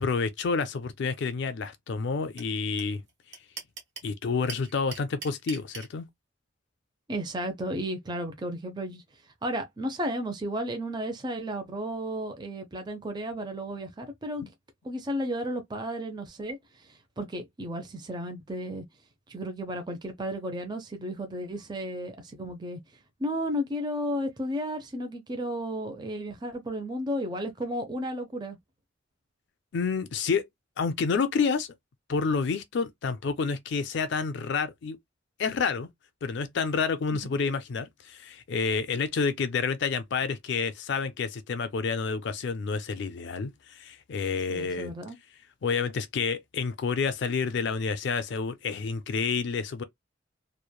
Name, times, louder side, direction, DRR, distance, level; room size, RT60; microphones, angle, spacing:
voice 1, 0.0-3.0 4.0-6.1 29.7-30.4 30.8-31.7 32.1-35.0 35.4-35.9 36.2-44.9 45.6-49.8, left 5 dB, 60° left, 0.4 m, -29 dB
sound 1, 2.4-2.5 2.8-2.9 3.1-4.1 4.5-5.9, right 5 dB, 60° right, 1.5 m, -39 dB
voice 2, 7.1-9.0 9.4-14.4 14.8-18.8 19.3-22.8 23.2-28.6 37.1-37.3 44.5-45.2, equal, 20° right, 0.5 m, -33 dB
3.0 x 2.1 x 2.2 m
head